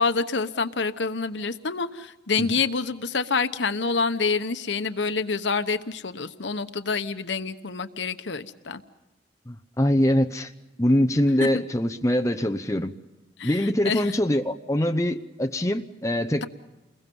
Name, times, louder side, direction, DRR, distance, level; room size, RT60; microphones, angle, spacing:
voice 1, 0.0-8.8 11.4-11.5 13.4-14.1, left 4 dB, 80° left, 10 dB, 1.1 m, -27 dB
voice 2, 9.5-10.5 10.8-12.9 13.4-16.5, left 1 dB, 15° left, 7 dB, 0.8 m, -23 dB
30.0 x 22.0 x 5.4 m, 1.0 s
head